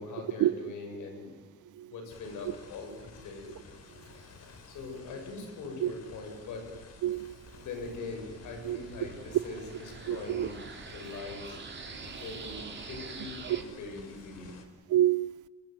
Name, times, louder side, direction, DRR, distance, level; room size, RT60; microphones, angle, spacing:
voice 1, 0.0-1.4 1.8-3.5 4.7-6.7 7.6-11.6 12.1-14.5, left 3 dB, 85° left, 7.5 m, -42 dB
sound 1, 2.1-14.7, left 4 dB, 55° left, 3.9 m, -52 dB
sound 2, 6.3-13.6, right 5 dB, 35° right, 3.5 m, -46 dB
voice 2, 7.0-7.4 8.6-8.8 10.1-10.5 13.4-13.6 14.9-15.5, right 13 dB, 85° right, 0.8 m, -27 dB
25.5 x 21.5 x 8.0 m
cardioid pair, 90°, 30 cm